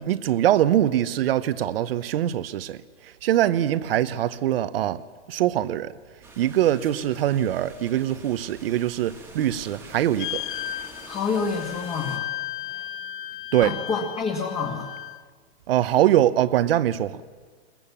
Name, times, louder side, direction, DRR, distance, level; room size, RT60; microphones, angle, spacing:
voice 1, 0.0-2.8 3.0-5.0 5.3-5.9 6.4-10.4 13.5-13.7 15.7-17.2, right 12 dB, 55° right, 1.0 m, -23 dB
sound 1, 6.2-12.2, right 2 dB, 5° right, 1.8 m, -46 dB
sound 2, 10.2-15.2, left 12 dB, 45° left, 0.6 m, -35 dB
voice 2, 11.1-12.3 13.6-14.9, left 5 dB, 15° left, 1.7 m, -28 dB
22.5 x 20.5 x 7.3 m
hypercardioid pair, 160°, 35 cm